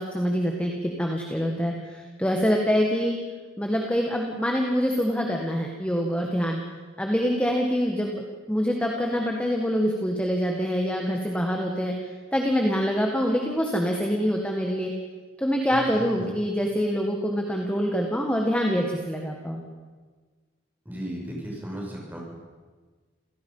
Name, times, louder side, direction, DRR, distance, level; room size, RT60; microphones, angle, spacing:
voice 1, 0.0-1.7 2.2-3.2 3.6-6.6 7.0-8.2 8.5-11.9 12.3-14.9 15.4-19.6, equal, 5° left, 1 dB, 1.7 m, -25 dB
voice 2, 15.7-16.3 20.8-22.2, equal, 10° right, -2 dB, 6.2 m, -36 dB
27.5 x 17.0 x 5.6 m, 1.4 s
head